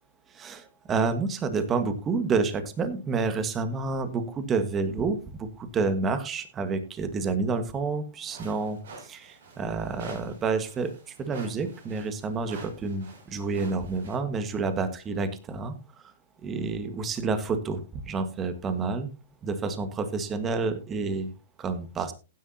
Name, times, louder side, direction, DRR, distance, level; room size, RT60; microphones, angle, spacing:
voice 1, 0.3-10.9 11.2-15.7 16.4-17.8 18.0-19.1 19.4-21.3 21.6-22.1, right 4 dB, 20° right, 10 dB, 1.6 m, -29 dB
sound 1, 8.3-14.2, right 3 dB, 65° right, 6.8 m, -47 dB
15.5 x 10.0 x 2.8 m, 0.31 s
hypercardioid pair, 145°, 0 cm